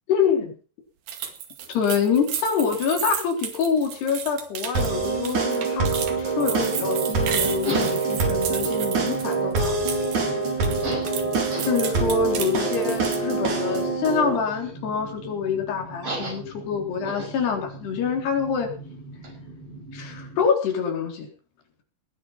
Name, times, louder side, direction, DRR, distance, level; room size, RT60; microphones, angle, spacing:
voice 1, 0.1-0.5 1.7-9.8 11.7-18.7 19.9-21.3, left 6 dB, 85° left, 3 dB, 5.8 m, -26 dB
sound 1, 1.1-10.2 10.5-13.3, right 8 dB, 65° right, 3.9 m, -33 dB
sound 2, 4.8-14.4, right 4 dB, 50° right, 5.5 m, -25 dB
sound 3, 6.2-20.5, right 1 dB, 35° right, 6.1 m, -38 dB
19.5 x 10.0 x 5.7 m, 0.39 s
omnidirectional pair, 4.6 m